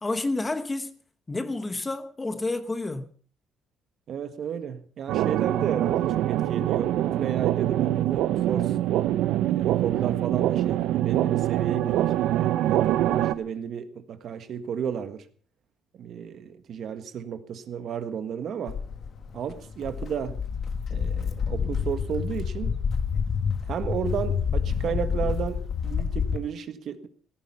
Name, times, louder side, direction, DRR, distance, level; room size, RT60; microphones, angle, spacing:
voice 1, 0.0-1.0 1.3-3.1, left 2 dB, 15° left, 1.1 m, -29 dB
voice 2, 4.1-8.8 9.5-15.3 15.9-18.8 19.3-20.4 20.9-22.7 23.7-27.1, right 7 dB, 50° right, 1.6 m, -33 dB
sound 1, 5.1-13.3, right 13 dB, 80° right, 0.8 m, -24 dB
Walk footsteps, 18.7-26.4, left 6 dB, 45° left, 1.4 m, -28 dB
16.5 x 14.5 x 5.5 m
cardioid pair, 150°, 0 cm